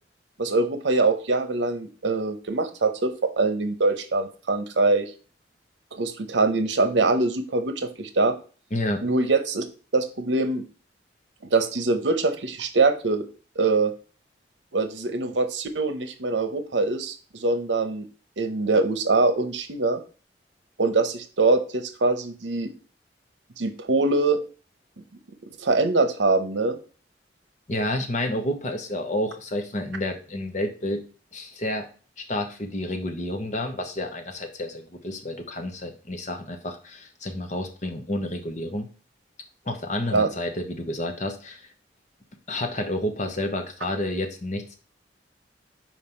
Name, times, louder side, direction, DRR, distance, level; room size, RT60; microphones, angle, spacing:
voice 1, 0.4-5.1 5.9-8.3 9.0-9.6 9.9-10.6 11.5-13.2 13.6-13.9 14.7-18.0 18.4-20.0 20.8-22.7 23.6-24.4 25.6-26.8 40.1-40.3, right 3 dB, 75° right, 9 dB, 0.8 m, -23 dB
voice 2, 8.7-9.0 27.7-31.0 31.3-31.9 32.2-38.9 39.6-41.7 42.5-44.8, left 1 dB, 40° left, 5 dB, 0.9 m, -30 dB
5.4 x 4.6 x 4.4 m, 0.38 s
head